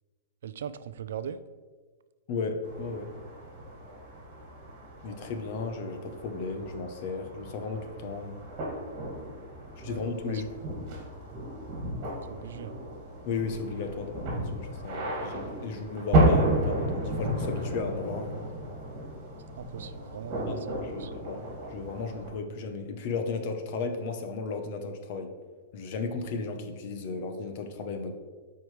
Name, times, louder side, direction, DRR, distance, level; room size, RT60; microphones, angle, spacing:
voice 1, 0.4-1.4 9.8-10.4 12.3-12.8 19.6-20.6 21.0-21.1, right 8 dB, 75° right, 14 dB, 0.4 m, -39 dB
voice 2, 2.3-3.1 5.0-8.4 9.8-10.8 13.3-18.5 20.5-25.3 25.7-28.1, left 4 dB, 40° left, 6 dB, 0.8 m, -35 dB
sound 1, 2.6-22.3, right 1 dB, 30° right, 2.0 m, -33 dB
12.0 x 4.7 x 3.2 m, 1.4 s
supercardioid pair, 170°, 0 cm